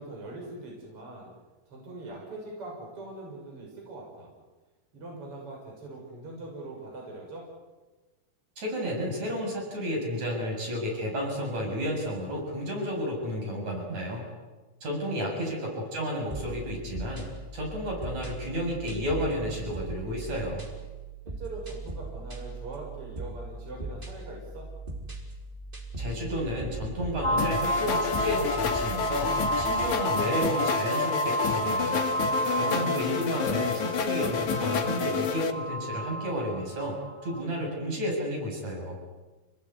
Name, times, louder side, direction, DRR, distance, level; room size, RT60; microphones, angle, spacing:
voice 1, 0.0-1.3 1.7-4.3 4.9-7.5 15.3-15.6 21.3-24.7 32.5-33.2, right 2 dB, 45° right, -1 dB, 7.2 m, -42 dB
voice 2, 8.6-14.3 14.8-17.3 17.5-20.7 26.0-32.1 32.6-39.0, equal, 60° right, 0 dB, 8.6 m, -32 dB
sound 1, 16.3-30.0, right 3 dB, 15° right, 3.9 m, -39 dB
sound 2, 27.2-37.4, right 1 dB, 40° left, 0.7 m, -32 dB
sound 3, 27.4-35.5, left 6 dB, 70° left, 3.2 m, -29 dB
29.0 x 19.0 x 9.7 m, 1.2 s
omnidirectional pair, 3.6 m